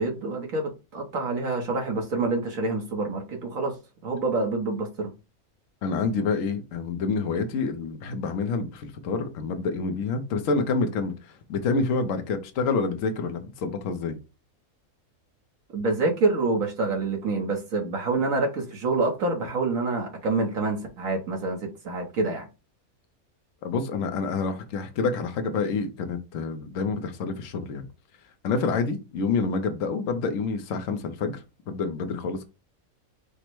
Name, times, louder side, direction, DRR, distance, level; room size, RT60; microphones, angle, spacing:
voice 1, 0.0-3.7 4.0-5.1 15.7-22.5, right 3 dB, 70° right, 1.4 m, -27 dB
voice 2, 5.8-11.1 11.5-14.1 23.6-27.9 28.4-31.4 31.7-32.5, left 4 dB, 65° left, 1.1 m, -27 dB
5.2 x 2.1 x 4.5 m
omnidirectional pair, 1.5 m